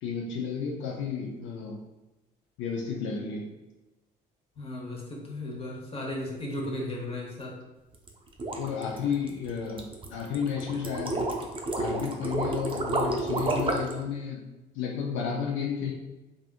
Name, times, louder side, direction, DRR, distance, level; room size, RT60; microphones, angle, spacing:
voice 1, 0.0-1.8 2.6-3.6 8.6-11.4 11.8-14.4 14.7-15.9, left 6 dB, 70° left, -1 dB, 0.5 m, -32 dB
voice 2, 4.6-7.6, left 1 dB, 30° left, -2 dB, 1.0 m, -35 dB
sound 1, 7.9-14.0, right 2 dB, 25° right, 0.6 m, -30 dB
3.4 x 2.4 x 2.4 m, 1.1 s
supercardioid pair, 65°, 21 cm